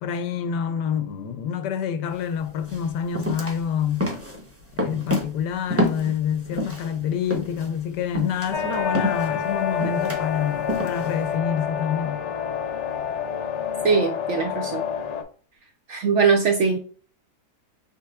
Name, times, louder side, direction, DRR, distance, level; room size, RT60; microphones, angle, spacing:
voice 1, 0.0-4.1 4.8-12.2, left 8 dB, 90° left, 1.3 m, -27 dB
sound 1, 2.1-2.3 2.7-6.9 7.3-11.3, left 1 dB, 15° right, 0.6 m, -28 dB
sound 2, 8.5-15.2, left 7 dB, 55° left, 0.8 m, -28 dB
voice 2, 13.8-14.8 15.9-16.8, right 5 dB, 65° right, 0.7 m, -21 dB
5.6 x 3.4 x 2.3 m
omnidirectional pair, 1.8 m